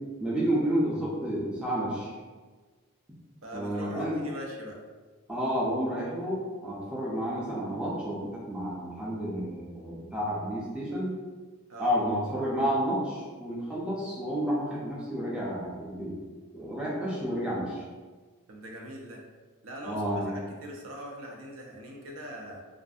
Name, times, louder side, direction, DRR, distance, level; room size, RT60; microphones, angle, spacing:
voice 1, 0.2-2.1 3.5-4.2 5.3-11.1 11.8-16.1 16.5-17.8 19.8-20.3, equal, 5° right, -7 dB, 0.4 m, -30 dB
voice 2, 3.4-4.8 11.7-12.0 18.5-19.2 19.6-22.6, equal, 70° right, -1 dB, 0.5 m, -41 dB
2.5 x 2.4 x 2.3 m, 1.4 s
head